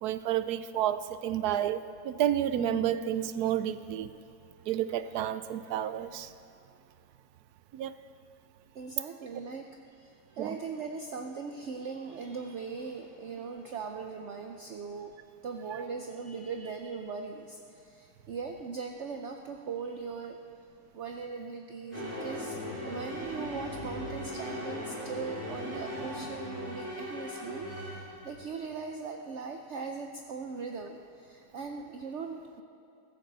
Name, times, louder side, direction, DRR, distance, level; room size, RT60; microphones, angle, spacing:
voice 1, 0.0-4.1 4.7-6.3 7.7-7.9 10.4-10.6, right 10 dB, 85° right, 13 dB, 1.1 m, -30 dB
voice 2, 8.7-9.7 9.9-15.2 15.4-20.4 20.9-22.6 22.8-32.6, right 5 dB, 55° right, 3 dB, 0.9 m, -40 dB
sound 1, 21.9-28.5, equal, 10° right, 3.9 m, -38 dB
15.5 x 14.5 x 4.0 m, 2.7 s
omnidirectional pair, 1.6 m